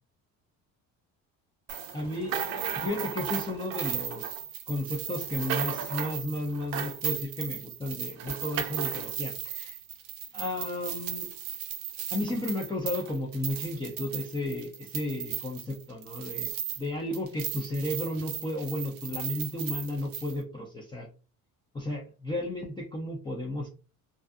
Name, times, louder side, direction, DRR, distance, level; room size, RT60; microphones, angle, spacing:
sound 1, 1.7-16.9 17.1-20.3, right 9 dB, 80° right, 0.6 m, -35 dB
voice 1, 1.9-4.4 4.7-9.8 10.3-11.3 12.1-16.5 16.8-21.1 21.7-23.7, left 1 dB, 15° left, -2 dB, 0.4 m, -33 dB
2.6 x 2.3 x 2.3 m, 0.33 s
cardioid pair, 125°, 36 cm